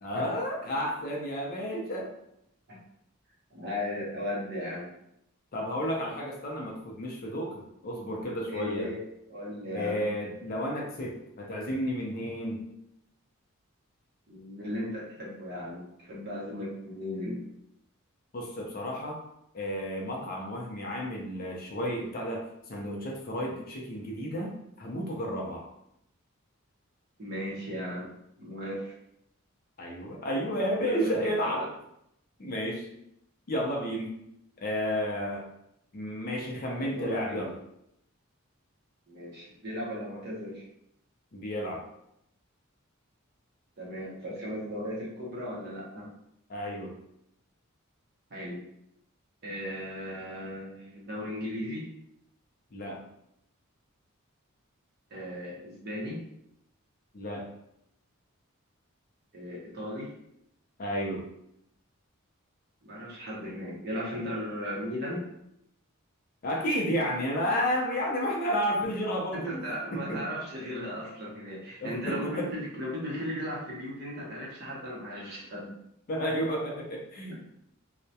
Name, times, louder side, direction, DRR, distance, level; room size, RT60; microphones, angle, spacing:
voice 1, 0.0-2.1 5.5-8.9 9.7-12.6 18.3-19.2 19.5-25.7 29.8-31.7 32.4-32.9 33.5-34.2 34.6-35.4 35.9-37.5 41.3-41.8 46.5-46.9 52.7-53.0 57.1-57.5 60.8-61.2 66.4-70.2 71.8-72.5 76.1-77.4, equal, 45° left, 0 dB, 0.4 m, -32 dB
voice 2, 3.5-4.9 8.5-9.0 9.3-10.0 14.3-17.4 27.2-28.9 30.9-31.1 31.4-31.7 36.7-37.4 39.1-40.7 43.8-46.1 48.3-48.6 49.4-51.9 55.1-56.2 59.3-60.1 62.8-65.2 69.3-75.7 77.3-77.4, equal, 50° right, -4 dB, 0.7 m, -36 dB
2.2 x 2.1 x 2.7 m, 0.77 s
head